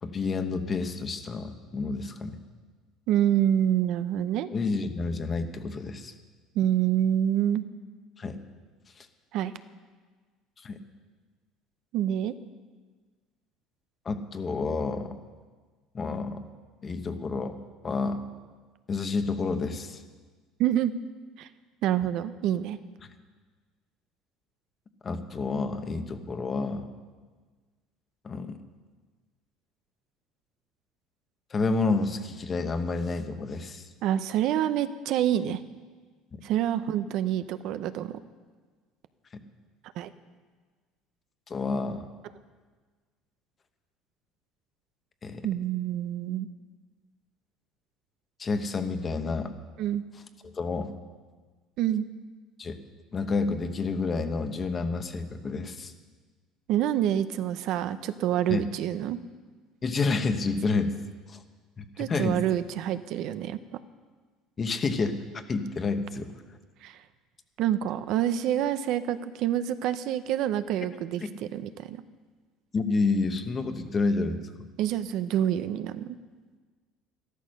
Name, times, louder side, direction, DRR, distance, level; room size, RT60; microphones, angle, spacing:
voice 1, 0.0-2.4 4.5-6.1 8.2-8.4 9.0-9.1 10.6-10.8 14.0-15.2 15.9-16.4 16.8-17.6 17.8-18.2 18.9-20.0 22.0-22.1 25.0-26.9 28.2-28.6 31.5-33.9 36.3-36.4 39.3-39.4 41.5-42.1 45.2-45.5 48.4-49.5 50.4-50.9 52.6-52.8 53.1-55.9 58.5-58.6 59.8-60.9 61.3-61.4 61.8-62.4 64.6-65.2 65.5-66.3 71.2-71.3 72.7-74.5, left 4 dB, 20° left, 8 dB, 1.0 m, -29 dB
voice 2, 3.1-4.5 6.5-7.6 9.3-9.5 11.9-12.3 20.6-20.9 21.4-21.5 21.8-22.8 34.0-35.6 36.4-38.2 40.0-40.1 45.4-46.5 49.8-50.0 51.8-52.0 56.7-59.2 62.0-63.6 66.8-67.0 67.6-71.2 71.5-72.0 74.8-76.2, right 11 dB, 55° right, 12 dB, 0.6 m, -27 dB
13.5 x 13.0 x 6.5 m, 1.4 s
cardioid pair, 160°, 0 cm